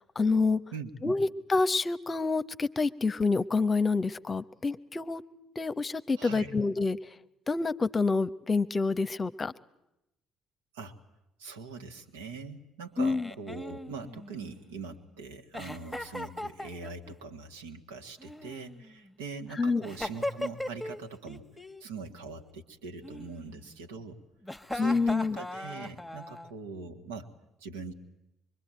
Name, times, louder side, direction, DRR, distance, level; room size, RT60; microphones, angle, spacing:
voice 1, 0.2-0.6 1.0-5.2 5.6-7.0 7.5-9.5 13.0-13.2 19.6-19.8 24.8-25.4, left 3 dB, 30° left, 14 dB, 0.9 m, -27 dB
voice 2, 0.7-1.1 6.1-6.6 10.7-11.0 11.4-21.4 21.8-24.2 24.7-27.3 27.6-27.9, right 4 dB, 70° right, 5 dB, 2.0 m, -42 dB
Giggle, 13.0-14.8 15.5-17.1 18.2-19.1 19.8-21.0 21.3-21.8 23.0-23.8 24.4-26.5, left 1 dB, ahead, 1.6 m, -39 dB
24.5 x 23.5 x 9.0 m, 0.89 s
figure-of-eight pair, 50°, 0 cm